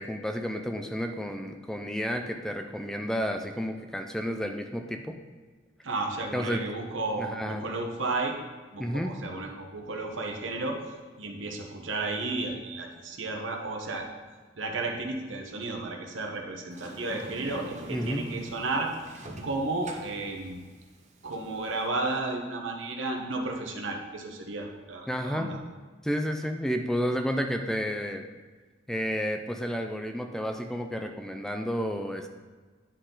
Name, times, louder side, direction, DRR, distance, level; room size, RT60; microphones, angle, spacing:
voice 1, 0.0-5.2 6.3-6.6 7.2-7.7 8.8-9.1 17.9-18.2 25.1-25.5 26.0-28.3 28.9-32.3, equal, 5° left, 5 dB, 0.3 m, -31 dB
voice 2, 5.8-8.3 8.7-10.8 11.2-14.1 14.6-18.9 19.4-20.6 21.2-25.6, right 2 dB, 75° right, 2 dB, 1.0 m, -33 dB
Sliding door, 16.7-21.9, right 1 dB, 35° right, 0.8 m, -44 dB
9.8 x 4.2 x 3.9 m, 1.4 s
head